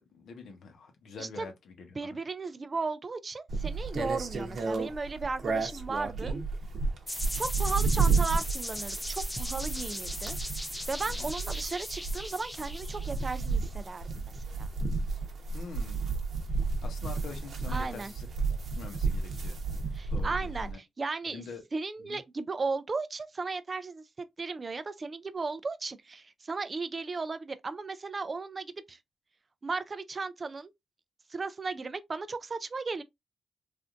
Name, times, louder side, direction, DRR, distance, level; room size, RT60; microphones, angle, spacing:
voice 1, 0.1-2.0 7.8-7.9 11.1-11.3 15.5-16.0 16.8-18.3 18.7-19.6 20.1-20.8 21.3-21.6 22.0-22.2, left 4 dB, 80° left, 0.9 m, -45 dB
voice 2, 1.2-1.5 2.0-6.3 7.3-10.4 10.9-14.7 17.7-18.1 19.9-21.4 21.7-24.0 24.4-29.0 29.6-30.7 31.3-33.0, right 4 dB, 30° right, 0.3 m, -35 dB
sound 1, 3.5-20.7, right 4 dB, 60° right, 0.7 m, -32 dB
sound 2, 7.1-13.8, left 1 dB, 5° left, 0.6 m, -38 dB
3.4 x 2.5 x 2.4 m
cardioid pair, 120°, 0 cm